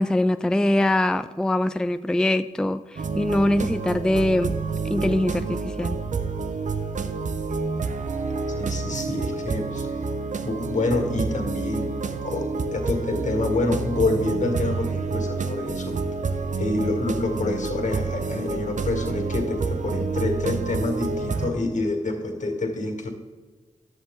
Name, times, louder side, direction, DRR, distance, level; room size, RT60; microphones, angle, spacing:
voice 1, 0.0-4.6 4.8-6.0, left 1 dB, 5° left, 12 dB, 0.3 m, -23 dB
sound 1, 3.0-21.5, right 4 dB, 70° right, 0.7 m, -28 dB
voice 2, 8.6-10.0 10.4-11.9 12.2-16.0 16.6-23.1, left 2 dB, 65° left, 3 dB, 1.9 m, -27 dB
11.0 x 8.0 x 3.7 m, 1.4 s
cardioid pair, 50°, 13 cm